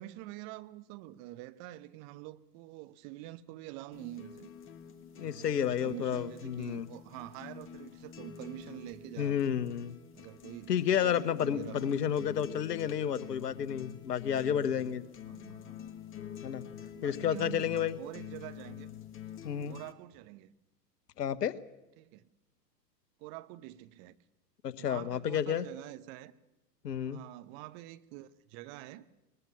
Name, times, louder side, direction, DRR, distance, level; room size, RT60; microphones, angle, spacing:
voice 1, 0.0-4.5 5.1-9.4 10.1-12.0 15.2-15.8 16.8-18.9 19.7-20.5 22.0-22.3 23.2-24.2 24.8-26.3 27.1-29.0, right 15 dB, 35° right, 1.0 m, -46 dB
sound 1, 3.9-19.9, left 9 dB, 25° left, 1.6 m, -47 dB
voice 2, 5.2-6.9 9.2-10.0 10.7-15.0 16.4-16.6 17.0-17.9 19.4-19.8 21.2-21.5 24.6-25.7 26.8-27.2, left 9 dB, 70° left, 1.3 m, -31 dB
20.5 x 20.5 x 7.3 m
figure-of-eight pair, 105°, 50 cm